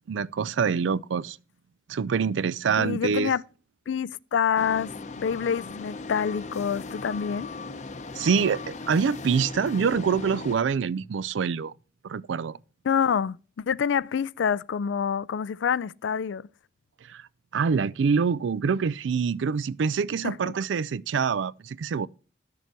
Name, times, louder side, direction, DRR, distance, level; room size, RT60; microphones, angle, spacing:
voice 1, 0.1-1.4 1.9-3.3 8.2-11.7 12.0-12.6 17.1-17.2 17.5-22.1, right 6 dB, 85° right, 0.4 m, -25 dB
voice 2, 2.8-3.4 3.9-7.5 12.8-13.4 13.7-16.5 20.2-20.4, left 7 dB, 80° left, 0.4 m, -27 dB
sound 1, 4.6-10.6, left 3 dB, 40° left, 0.6 m, -38 dB
12.0 x 6.9 x 4.5 m
head